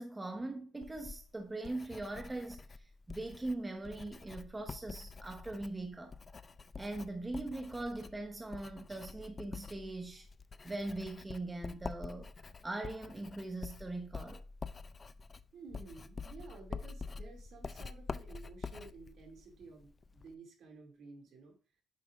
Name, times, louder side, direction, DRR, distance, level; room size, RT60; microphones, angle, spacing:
voice 1, 0.0-6.1 6.8-10.3 10.6-12.3 12.6-14.4, right 2 dB, 15° right, 0.9 m, -41 dB
Writing, 0.8-20.3, left 4 dB, 35° left, 0.4 m, -47 dB
voice 2, 15.5-21.6, right 4 dB, 70° right, 2.5 m, -53 dB
8.3 x 5.9 x 2.5 m
cardioid pair, 90°, 0 cm